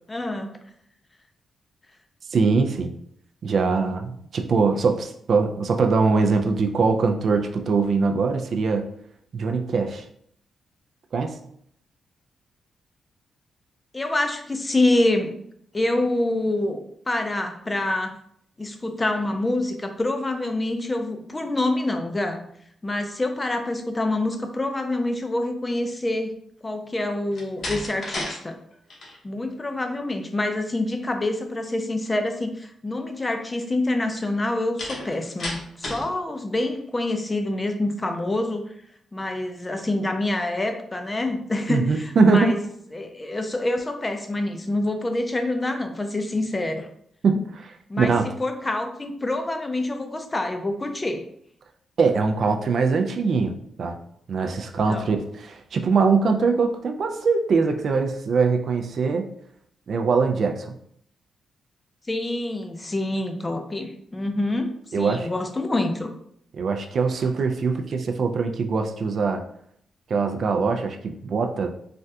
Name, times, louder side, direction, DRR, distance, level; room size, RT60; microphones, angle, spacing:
voice 1, 0.1-0.6 13.9-15.4 15.7-18.1 18.6-22.4 22.8-26.3 26.6-28.6 29.2-38.7 39.1-42.6 42.9-46.9 47.9-51.2 54.9-55.1 62.1-66.1, left 2 dB, 25° left, 5 dB, 0.4 m, -26 dB
voice 2, 2.3-2.9 3.4-8.8 9.3-10.0 11.1-11.4 41.7-42.6 47.2-48.3 52.0-53.5 53.8-54.0 54.3-59.3 59.9-60.7 64.9-65.3 66.6-69.4 70.1-71.7, right 4 dB, 60° right, 5 dB, 0.3 m, -22 dB
Slam, 27.3-28.4 28.7-29.2 34.8-36.1, left 1 dB, 55° left, 0.9 m, -32 dB
3.3 x 2.3 x 2.7 m, 0.68 s
cardioid pair, 85°, 0 cm